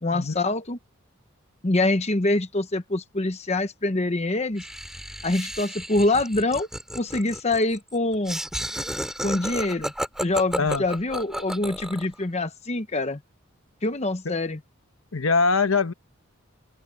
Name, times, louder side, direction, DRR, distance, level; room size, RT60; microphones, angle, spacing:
voice 1, 0.0-0.8 1.6-4.6 5.2-6.7 7.0-8.4 9.2-9.9 10.2-13.2 13.8-14.6, left 2 dB, 30° left, 0.9 m, -25 dB
Laughter, 4.6-12.1, equal, 5° right, 2.5 m, -32 dB
voice 2, 15.1-15.9, left 4 dB, 75° left, 1.1 m, -22 dB
open air
head